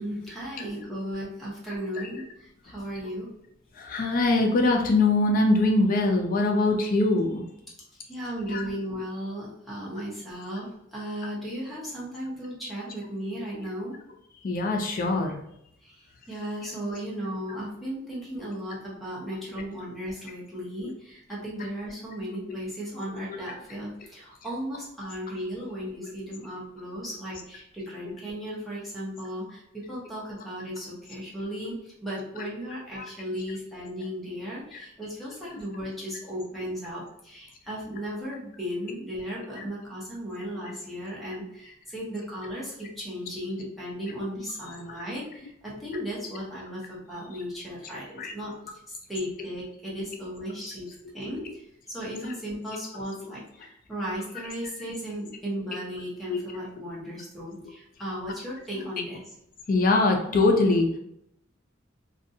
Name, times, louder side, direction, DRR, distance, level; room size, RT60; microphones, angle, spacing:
voice 1, 0.0-3.3 8.0-14.0 15.8-48.5 49.1-50.9 51.1-59.3, equal, ahead, -7 dB, 0.7 m, -36 dB
voice 2, 3.8-7.4 8.5-8.6 14.4-15.4 32.9-33.0 44.9-45.0 48.2-48.3 56.3-56.4 59.7-60.9, left 2 dB, 45° left, 3 dB, 0.4 m, -22 dB
2.6 x 2.3 x 2.6 m, 0.76 s
head